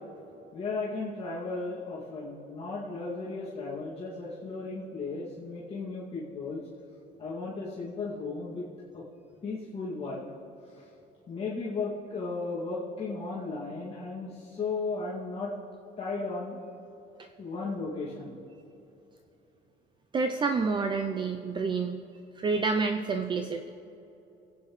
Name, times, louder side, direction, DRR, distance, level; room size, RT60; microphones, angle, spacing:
voice 1, 0.5-6.6 7.2-8.7 8.9-9.0 9.4-10.2 10.7-10.9 11.3-15.5 16.0-16.6 17.4-18.4, left 3 dB, 35° left, -8 dB, 2.4 m, -35 dB
voice 2, 20.1-22.0 22.4-23.7, right 4 dB, 25° right, 7 dB, 0.6 m, -28 dB
26.5 x 9.2 x 3.2 m, 2.9 s
cardioid pair, 150°, 18 cm